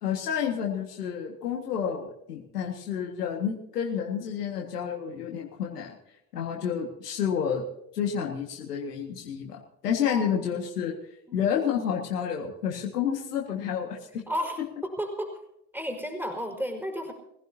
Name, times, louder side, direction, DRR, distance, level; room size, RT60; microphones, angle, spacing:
voice 1, 0.0-6.0 6.3-7.7 7.9-10.9 11.3-14.2 14.6-14.7, left 8 dB, 85° left, 0 dB, 1.9 m, -30 dB
voice 2, 10.1-10.6 11.3-11.4 14.3-15.4 15.7-17.1, equal, 5° right, 2 dB, 4.7 m, -33 dB
24.0 x 16.0 x 2.8 m, 0.81 s
hypercardioid pair, 65°, 46 cm